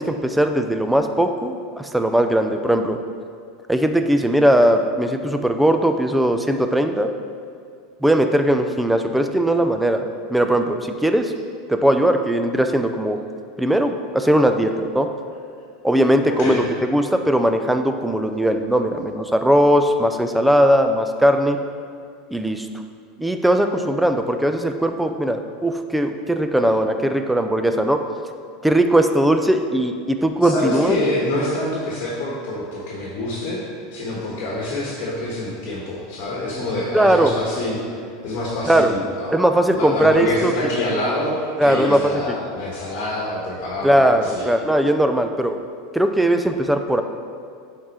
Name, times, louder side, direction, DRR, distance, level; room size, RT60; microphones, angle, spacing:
voice 1, 0.0-3.0 3.7-7.1 8.0-11.3 11.7-13.2 13.6-15.1 15.8-21.6 22.3-22.7 23.2-28.0 28.6-31.0 36.9-37.3 38.7-38.9 39.3-40.7 41.6-42.1 43.8-45.6 45.9-47.0, right 1 dB, 5° right, 6 dB, 0.4 m, -19 dB
voice 2, 16.3-16.6 30.4-33.6 33.9-37.8 38.2-39.4 39.7-44.5, left 1 dB, 60° left, -4 dB, 1.3 m, -26 dB
7.6 x 3.7 x 4.2 m, 2.3 s
supercardioid pair, 145°, 0 cm